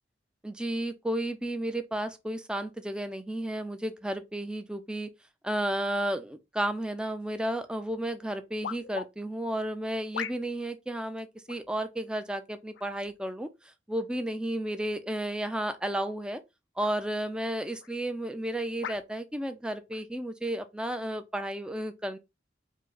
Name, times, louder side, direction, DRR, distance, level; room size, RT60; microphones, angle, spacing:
voice 1, 0.4-5.1 5.4-13.5 13.9-16.4 16.8-22.2, right 1 dB, 5° right, 0.4 m, -32 dB
sound 1, 7.6-7.7 8.6-9.1 10.1-10.7 11.5-11.7 12.7-13.1 13.9-14.1 16.0-16.2 16.8-17.0 17.8-17.9 18.8-19.1 19.9-20.0, left 8 dB, 80° left, 0.3 m, -39 dB
5.0 x 2.1 x 3.9 m
head